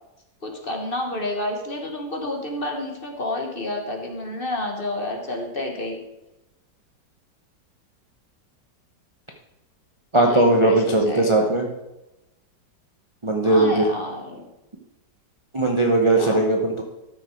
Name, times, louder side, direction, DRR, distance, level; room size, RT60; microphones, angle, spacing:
voice 1, 0.4-6.0 10.3-11.6 13.4-14.5 16.1-16.7, left 1 dB, 35° left, 2 dB, 1.3 m, -30 dB
voice 2, 10.1-11.7 13.2-13.9 15.5-16.8, right 2 dB, 25° right, 1 dB, 0.6 m, -19 dB
12.5 x 6.4 x 4.5 m, 0.97 s
omnidirectional pair, 1.9 m